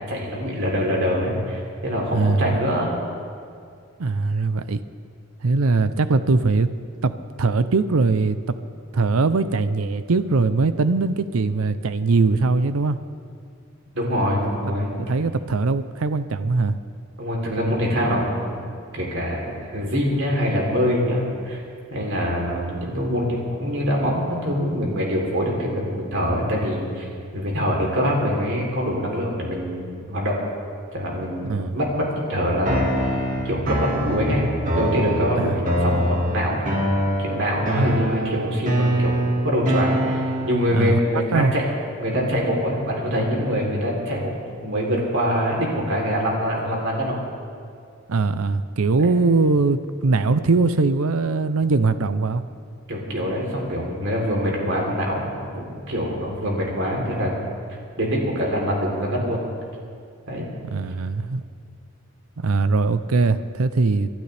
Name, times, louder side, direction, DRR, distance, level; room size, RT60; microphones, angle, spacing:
voice 1, 0.1-2.9 13.9-15.2 17.2-18.7 18.9-21.6 21.9-27.1 27.3-30.4 30.9-32.9 33.5-34.5 34.7-36.7 37.2-39.2 39.4-41.6 42.0-47.1 52.9-57.3 58.0-59.4 60.3-60.5, equal, 60° right, -2 dB, 3.4 m, -24 dB
voice 2, 2.1-2.6 4.0-4.8 5.4-6.7 7.0-7.1 7.4-8.4 8.9-13.0 15.0-16.7 31.4-31.8 35.4-35.6 37.7-37.9 40.7-41.0 41.3-41.5 48.1-52.4 60.7-61.4 62.4-64.1, right 3 dB, 80° right, 12 dB, 0.6 m, -21 dB
sound 1, 32.7-40.7, right 1 dB, 40° right, 1.8 m, -24 dB
28.0 x 12.0 x 3.4 m, 2.3 s
head